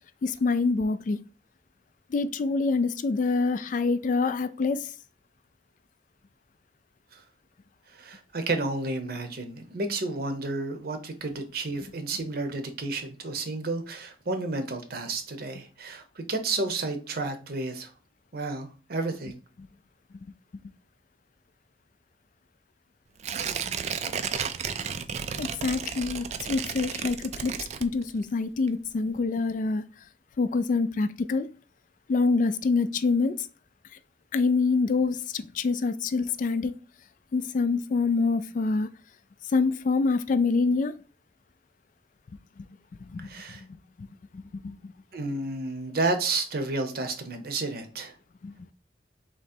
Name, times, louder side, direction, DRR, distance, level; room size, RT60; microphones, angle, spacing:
voice 1, 0.2-1.2 2.1-4.8 25.4-27.5 27.8-29.8 30.4-31.5 32.1-33.3 34.3-36.7 37.3-38.9 39.5-40.9 43.1-43.3 44.5-44.8 48.4-48.5, left 4 dB, 45° left, 0.3 m, -26 dB
voice 2, 7.9-17.9 18.3-19.3 43.2-43.6 45.1-48.1, right 3 dB, 55° right, 0.8 m, -31 dB
Tearing, 23.2-28.3 28.7-28.8, right 7 dB, 40° right, 0.3 m, -33 dB
3.7 x 3.0 x 4.3 m
head